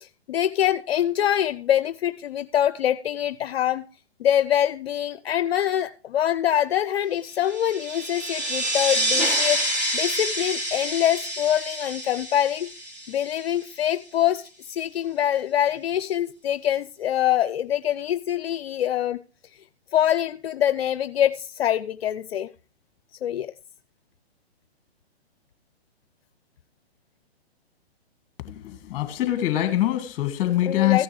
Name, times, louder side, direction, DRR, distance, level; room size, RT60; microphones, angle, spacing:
voice 1, 0.0-3.8 4.2-9.6 9.9-12.7 13.1-19.2 19.9-22.5 23.2-23.5 30.5-31.0, left 11 dB, 65° left, 0.5 m, -24 dB
sound 1, 7.4-13.6, equal, 30° right, 3.7 m, -27 dB
voice 2, 28.5-31.0, left 13 dB, 30° left, 1.7 m, -24 dB
15.0 x 9.8 x 3.1 m
hypercardioid pair, 140°, 32 cm